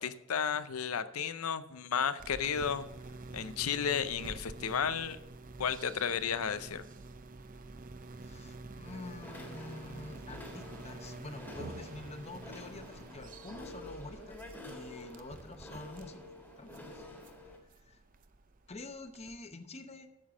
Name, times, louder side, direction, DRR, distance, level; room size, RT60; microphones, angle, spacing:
voice 1, 0.0-2.9 3.3-5.2 5.6-6.8, left 7 dB, 90° left, 13 dB, 0.6 m, -33 dB
sound 1, 2.2-19.4, right 3 dB, 40° right, 0.6 m, -48 dB
voice 2, 8.2-14.4 14.6-16.2 16.6-17.0 17.9-18.0 18.7-20.1, left 2 dB, 30° left, 8 dB, 0.8 m, -47 dB
sound 2, 8.8-17.6, left 2 dB, 10° left, 1.6 m, -49 dB
8.7 x 7.3 x 6.2 m, 0.91 s
head